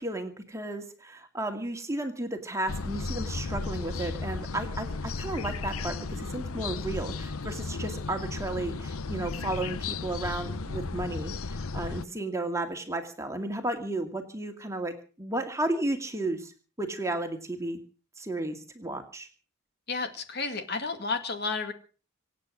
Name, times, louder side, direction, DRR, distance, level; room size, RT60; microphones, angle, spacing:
voice 1, 0.0-16.5 16.8-17.8 18.2-19.3, right 1 dB, 15° right, 5 dB, 2.2 m, -33 dB
sound 1, 2.7-12.0, left 3 dB, 75° left, 0.8 m, -34 dB
voice 2, 19.9-21.7, left 4 dB, 45° left, 7 dB, 2.2 m, -31 dB
26.0 x 8.8 x 6.4 m, 0.39 s
head